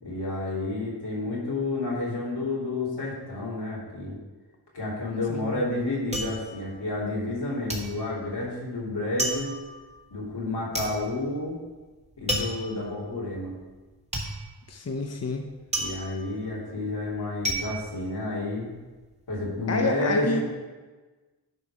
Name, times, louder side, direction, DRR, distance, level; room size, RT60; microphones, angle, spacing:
voice 1, 0.0-4.2 4.7-9.5 10.1-11.6 12.2-13.5 15.8-18.7 19.3-20.5, left 2 dB, 90° left, -6 dB, 3.0 m, -30 dB
sound 1, 5.0-7.4 7.7-18.8 19.1-19.7, right 1 dB, 15° right, 1.6 m, -33 dB
voice 2, 5.3-5.6 14.7-15.4 19.7-20.4, left 3 dB, 40° left, 4 dB, 0.7 m, -29 dB
11.0 x 5.3 x 4.9 m, 1.3 s
wide cardioid pair, 85°, 39 cm